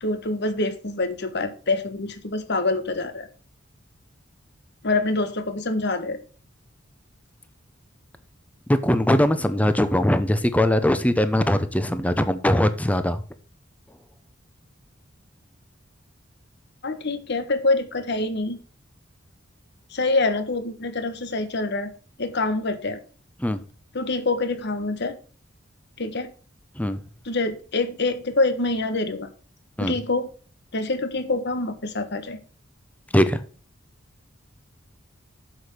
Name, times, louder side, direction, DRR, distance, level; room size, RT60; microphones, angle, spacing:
voice 1, 0.0-3.3 4.8-6.2 16.8-18.6 19.9-21.9 22.2-23.0 23.9-25.2 26.0-26.3 27.2-29.3 29.8-30.3 30.7-32.4, left 2 dB, 60° left, 10 dB, 1.4 m, -25 dB
voice 2, 8.7-13.2 23.4-23.6 26.8-27.0 29.8-30.0 33.1-33.4, left 1 dB, 10° left, 11 dB, 0.8 m, -21 dB
7.9 x 7.0 x 6.9 m, 0.39 s
head